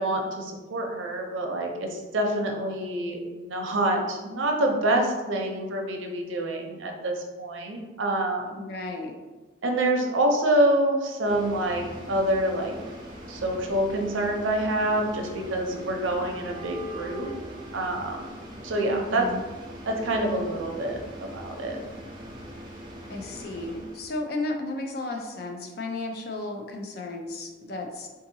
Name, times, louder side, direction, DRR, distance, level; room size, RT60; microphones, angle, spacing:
voice 1, 0.0-8.7 9.6-12.8 13.3-17.3 17.7-18.3 18.6-19.3 19.9-21.8, right 1 dB, 90° right, 2 dB, 0.6 m, -26 dB
voice 2, 8.6-9.1 18.9-19.4 23.1-28.1, left 2 dB, 55° left, 2 dB, 0.4 m, -34 dB
sound 1, 11.2-24.2, equal, 25° right, 0.5 m, -42 dB
sound 2, 14.8-18.8, right 4 dB, 25° left, 1.1 m, -46 dB
3.7 x 2.7 x 2.6 m, 1.2 s
head